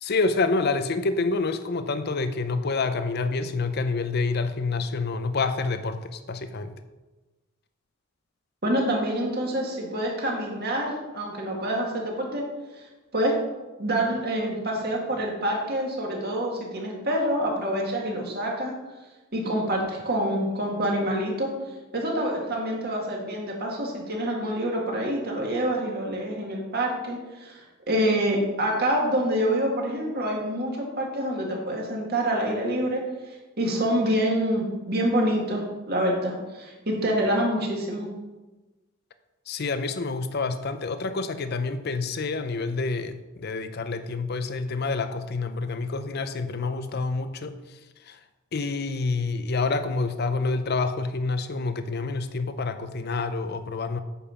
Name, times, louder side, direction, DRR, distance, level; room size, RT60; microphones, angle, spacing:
voice 1, 0.0-6.7 39.5-48.2 48.5-54.0, left 3 dB, 50° left, 10 dB, 0.5 m, -28 dB
voice 2, 8.6-12.5 13.1-13.3 13.8-18.7 19.3-21.5 21.9-33.0 33.3-38.1, right 1 dB, 50° right, -1 dB, 2.0 m, -26 dB
8.6 x 5.3 x 5.8 m, 1.1 s
head